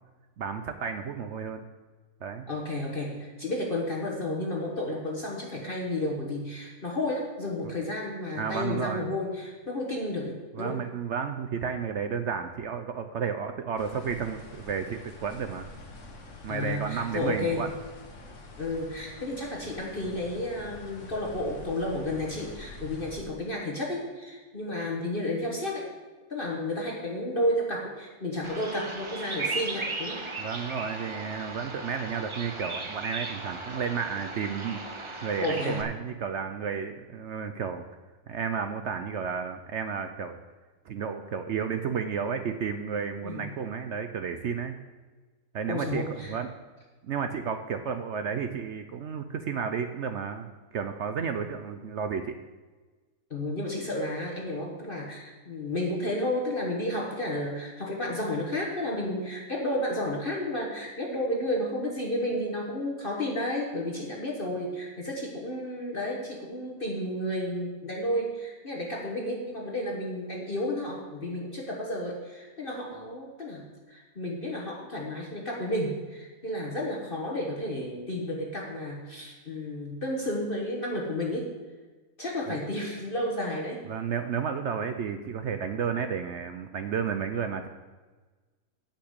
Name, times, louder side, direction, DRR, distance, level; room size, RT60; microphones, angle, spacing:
voice 1, 0.4-1.6 2.2-2.4 8.4-9.1 10.5-15.7 16.4-17.7 30.4-34.8 35.2-37.8 38.3-40.4 40.9-44.7 45.5-46.5 47.0-52.3 82.5-82.6 83.9-87.7, right 6 dB, 60° right, 7 dB, 0.8 m, -32 dB
voice 2, 2.5-10.8 16.5-17.7 18.6-25.9 26.3-30.2 35.4-35.8 43.2-43.5 45.7-46.3 53.3-81.5 82.2-83.8, left 1 dB, 35° left, -1 dB, 1.4 m, -32 dB
sound 1, 13.8-23.2, left 2 dB, 55° left, 1.5 m, -46 dB
Bird vocalization bird call bird song, 28.4-35.8, right 3 dB, 25° right, 0.6 m, -36 dB
8.8 x 5.8 x 8.0 m, 1.3 s
omnidirectional pair, 1.6 m